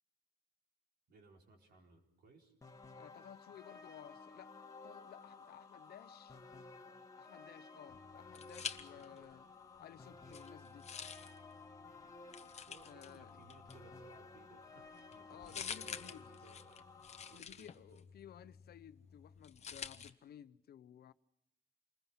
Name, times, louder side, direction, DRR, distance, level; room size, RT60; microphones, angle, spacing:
voice 1, 1.1-2.5 8.8-9.4 12.7-16.9 17.2-17.7, right 3 dB, 80° right, 4.5 m, -63 dB
sound 1, 2.6-17.4, left 3 dB, 20° left, 1.4 m, -55 dB
voice 2, 2.9-4.5 4.8-6.4 7.2-9.5 9.8-10.9 12.8-13.3 15.3-16.3 17.3-21.1, left 10 dB, 75° left, 0.8 m, -56 dB
sound 2, 7.9-9.4 9.7-20.1, left 7 dB, 40° left, 0.9 m, -50 dB
28.5 x 20.5 x 5.8 m
wide cardioid pair, 140°, 16 cm